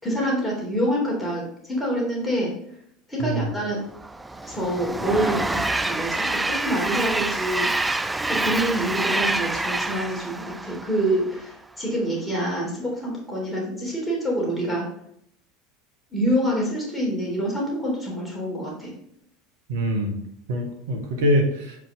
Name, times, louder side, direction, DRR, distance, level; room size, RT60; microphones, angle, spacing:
voice 1, 0.0-2.5 3.1-3.8 4.4-7.7 8.3-14.9 16.1-18.9, right 1 dB, 10° left, -3 dB, 3.1 m, -26 dB
Train, 3.9-11.4, right 2 dB, 10° right, 0.4 m, -27 dB
voice 2, 19.7-20.2 20.5-21.8, equal, 65° right, 5 dB, 1.4 m, -24 dB
7.8 x 5.1 x 3.6 m, 0.71 s
figure-of-eight pair, 75°, 0 cm